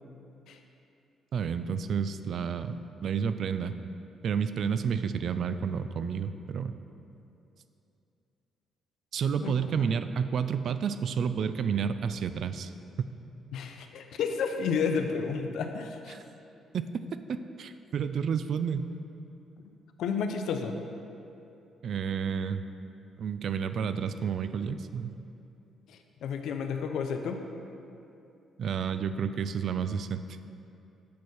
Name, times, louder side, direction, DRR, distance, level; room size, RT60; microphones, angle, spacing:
voice 1, 1.3-3.7 4.2-6.7 9.1-12.7 16.1-16.2 16.7-16.8 17.3-18.9 21.8-22.6 23.2-25.2 28.6-30.2, right 7 dB, 65° right, 11 dB, 0.3 m, -30 dB
voice 2, 9.4-9.9 13.5-16.2 20.0-20.8 25.9-27.4, left 6 dB, 80° left, 6 dB, 0.6 m, -31 dB
8.3 x 4.3 x 6.3 m, 2.7 s
cardioid pair, 90°, 0 cm